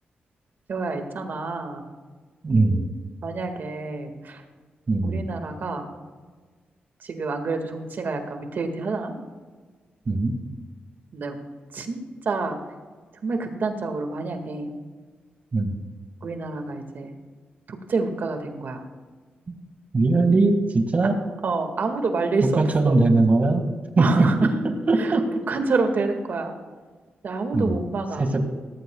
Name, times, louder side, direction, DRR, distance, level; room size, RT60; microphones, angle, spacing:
voice 1, 0.7-1.8 3.2-4.4 5.0-5.9 7.0-9.1 11.1-11.4 11.7-12.6 13.2-14.7 16.2-17.1 17.7-18.8 21.4-23.0 24.0-24.6 24.9-25.2 25.5-26.6 27.2-28.3, right 3 dB, 65° right, 5 dB, 1.9 m, -27 dB
voice 2, 2.4-2.8 4.9-5.2 10.1-10.3 15.5-15.7 19.9-21.1 22.4-23.6 24.0-24.3 24.9-25.2 27.5-27.7 28.2-28.4, right 3 dB, 45° right, 6 dB, 2.0 m, -20 dB
17.5 x 14.5 x 2.3 m, 1.4 s
cardioid pair, 65°, 4 cm